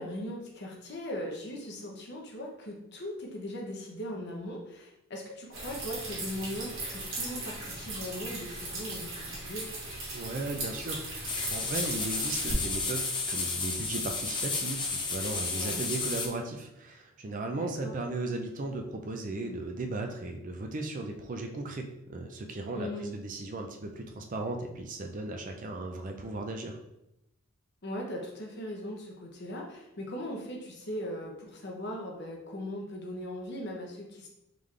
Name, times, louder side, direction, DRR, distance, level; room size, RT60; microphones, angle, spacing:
voice 1, 0.0-9.7 15.5-15.9 17.5-17.9 22.7-23.1 27.8-34.3, equal, 50° left, 0 dB, 0.8 m, -39 dB
sound 1, 5.5-12.5, right 2 dB, 60° right, 1.5 m, -38 dB
voice 2, 10.1-26.8, right 2 dB, 35° right, 3 dB, 0.4 m, -36 dB
sound 2, 11.3-16.3, left 3 dB, 20° left, 0.4 m, -32 dB
3.8 x 3.4 x 3.2 m, 0.86 s
head